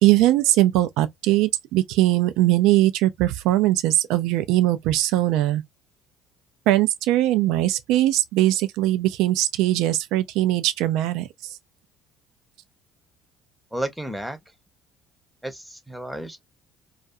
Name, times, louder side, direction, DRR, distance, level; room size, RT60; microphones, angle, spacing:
voice 1, 0.0-5.6 6.7-11.3, right 15 dB, 70° right, 0.4 m, -20 dB
voice 2, 13.7-14.4 15.4-16.4, right 1 dB, 5° right, 0.8 m, -32 dB
2.4 x 2.3 x 2.5 m
hypercardioid pair, 65°, 0 cm